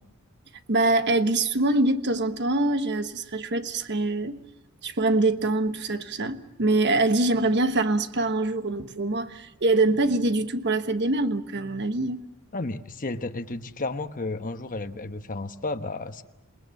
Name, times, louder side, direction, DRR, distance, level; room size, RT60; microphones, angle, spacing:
voice 1, 0.7-4.4 4.8-12.2, right 2 dB, 50° right, 1.3 m, -24 dB
voice 2, 12.5-16.2, left 2 dB, 35° left, 1.1 m, -32 dB
27.5 x 20.0 x 7.2 m
head